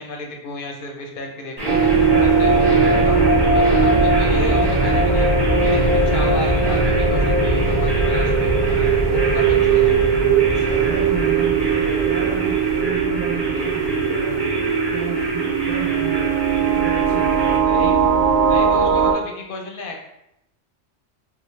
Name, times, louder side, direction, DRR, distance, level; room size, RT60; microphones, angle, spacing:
voice 1, 0.0-3.2 3.5-10.1 17.7-18.1 18.5-20.0, left 2 dB, 55° left, 1 dB, 0.7 m, -33 dB
sound 1, 1.6-17.6, right 1 dB, 20° right, 1.0 m, -24 dB
sound 2, 1.7-19.1, right 5 dB, 75° right, 1.1 m, -19 dB
voice 2, 10.5-14.4 14.9-16.4 16.8-17.8, right 4 dB, 55° right, -5 dB, 0.7 m, -32 dB
4.2 x 2.0 x 3.1 m, 0.82 s
omnidirectional pair, 1.3 m